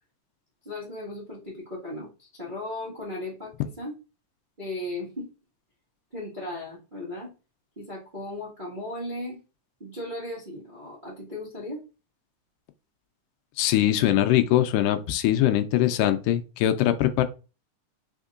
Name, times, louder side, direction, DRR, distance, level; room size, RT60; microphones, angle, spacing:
voice 1, 0.6-3.9 4.6-5.3 6.1-7.3 7.8-9.4 9.8-11.8, left 1 dB, 45° right, 0.6 m, -36 dB
voice 2, 13.6-17.2, left 12 dB, 85° left, 2.2 m, -22 dB
5.2 x 3.6 x 2.4 m
omnidirectional pair, 3.8 m